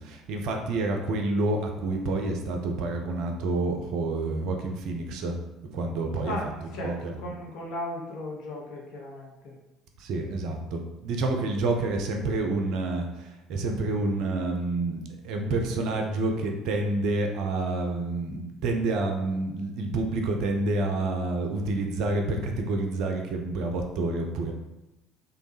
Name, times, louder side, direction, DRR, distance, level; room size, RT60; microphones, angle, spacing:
voice 1, 0.0-5.4 5.7-7.2 10.0-24.5, right 2 dB, 55° right, 3 dB, 0.4 m, -28 dB
voice 2, 6.2-9.6, left 1 dB, 55° left, -1 dB, 0.8 m, -36 dB
3.1 x 2.3 x 3.2 m, 0.96 s
figure-of-eight pair, 55°, 0 cm